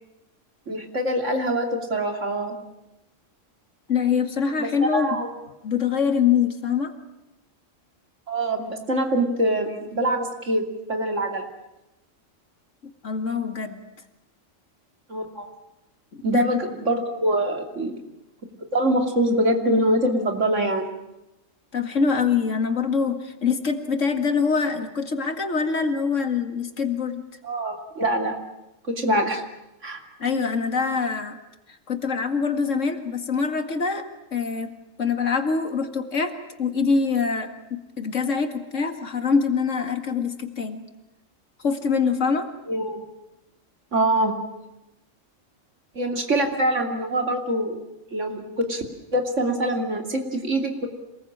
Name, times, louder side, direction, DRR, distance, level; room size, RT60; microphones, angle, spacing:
voice 1, 0.7-2.5 4.6-5.3 8.3-11.5 15.1-15.5 16.2-17.9 18.7-20.9 27.4-28.3 28.8-29.4 29.8-30.0 42.7-43.0 43.9-44.3 45.9-47.8 48.1-48.8 49.1-50.9, right 1 dB, 65° right, 4 dB, 3.2 m, -24 dB
voice 2, 3.9-5.2 5.6-6.9 13.0-13.8 16.1-16.5 21.7-27.2 30.2-31.4 31.9-34.0 34.3-34.7 35.0-36.3 36.6-40.8 41.6-42.5, left 5 dB, 70° left, 6 dB, 2.4 m, -24 dB
27.0 x 20.5 x 8.8 m, 0.93 s
omnidirectional pair, 1.3 m